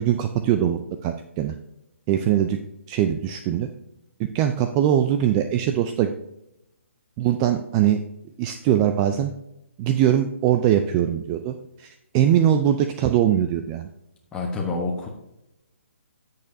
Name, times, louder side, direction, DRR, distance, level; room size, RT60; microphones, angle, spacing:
voice 1, 0.0-1.6 2.1-2.6 2.9-3.7 4.3-6.1 7.2-8.0 8.4-9.3 9.8-13.9, right 10 dB, 25° right, 8 dB, 0.4 m, -21 dB
voice 2, 14.3-15.1, left 3 dB, 10° left, -2 dB, 1.0 m, -27 dB
13.5 x 6.6 x 2.7 m, 0.86 s
hypercardioid pair, 145°, 7 cm